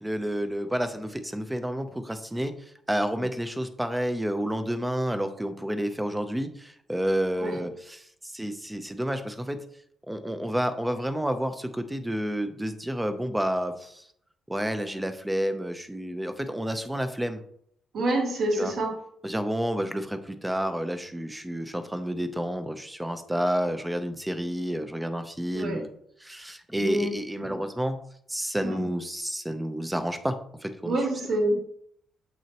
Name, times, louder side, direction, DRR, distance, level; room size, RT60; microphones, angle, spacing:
voice 1, 0.0-9.6 10.1-14.1 14.5-17.4 18.6-18.7 19.2-25.9 26.2-28.0 28.3-31.0, equal, 5° right, 8 dB, 0.7 m, -30 dB
voice 2, 17.9-18.9 25.5-25.8 26.8-27.6 28.6-28.9 30.8-31.6, right 1 dB, 70° right, -3 dB, 3.0 m, -27 dB
7.9 x 6.1 x 2.9 m, 0.68 s
cardioid pair, 125°, 0 cm